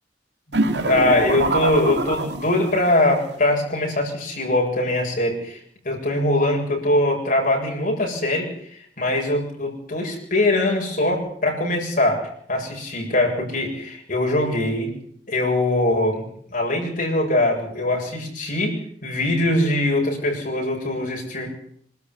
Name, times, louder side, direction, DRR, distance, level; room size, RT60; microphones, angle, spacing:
voice 1, 0.5-5.6 5.8-14.9 15.3-21.5, left 1 dB, 50° left, -1 dB, 7.6 m, -22 dB
sound 1, 0.5-2.9, right 2 dB, 70° right, 2.7 m, -23 dB
26.0 x 13.5 x 10.0 m, 0.65 s
head